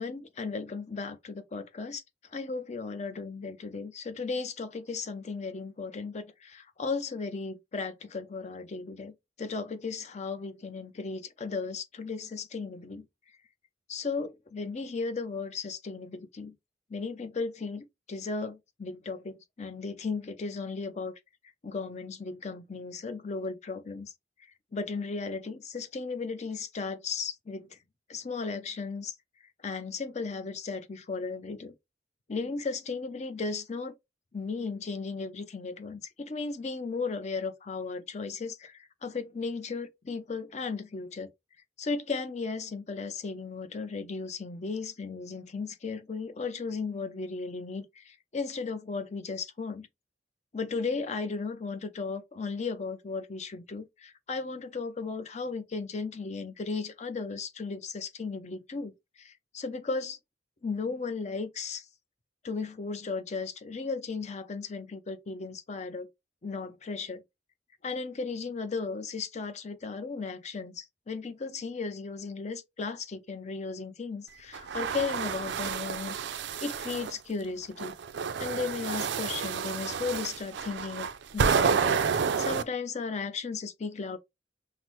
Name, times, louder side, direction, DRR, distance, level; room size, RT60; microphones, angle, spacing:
voice 1, 0.0-2.0 2.3-9.1 9.4-13.0 13.9-16.5 16.9-21.1 21.6-24.1 24.7-27.8 28.1-29.1 29.6-31.7 32.3-33.9 34.3-41.3 41.8-49.9 50.5-58.9 59.2-60.2 60.6-61.9 62.4-66.1 66.4-67.2 67.8-78.0 78.4-81.1 81.3-82.0 82.4-84.2, left 4 dB, 40° left, 0.6 m, -35 dB
sound 1, 74.5-77.1 77.8-82.6, right 6 dB, 70° right, 0.4 m, -29 dB
5.7 x 2.0 x 3.0 m
head